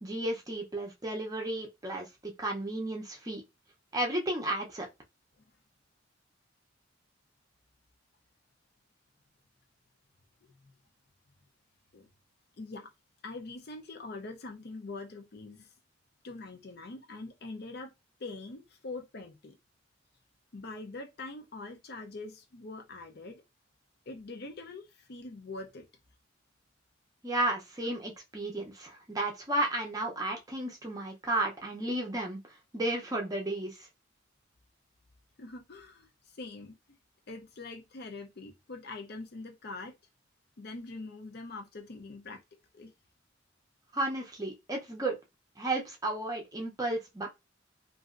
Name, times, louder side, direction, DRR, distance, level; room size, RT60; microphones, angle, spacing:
voice 1, 0.0-3.4 3.9-4.9 27.2-32.4 32.7-33.8 43.9-45.2 45.6-47.3, right 1 dB, 20° right, 0.6 m, -33 dB
voice 2, 10.4-10.7 11.9-12.1 12.6-12.9 13.2-15.7 16.2-17.9 18.2-19.6 20.5-23.4 24.1-25.9 35.4-37.0 37.3-39.9 40.6-42.4 42.7-42.9, left 3 dB, 50° left, 0.5 m, -43 dB
2.9 x 2.6 x 2.4 m
head